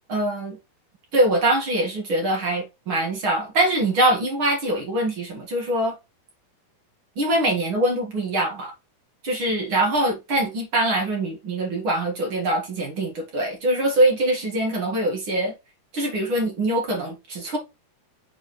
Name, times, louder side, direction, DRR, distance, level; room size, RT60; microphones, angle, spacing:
voice 1, 0.1-0.6 1.1-5.9 7.2-8.7 9.3-15.5 15.9-17.6, right 1 dB, 45° right, 2.0 m, -23 dB
6.8 x 4.8 x 3.2 m
omnidirectional pair, 4.5 m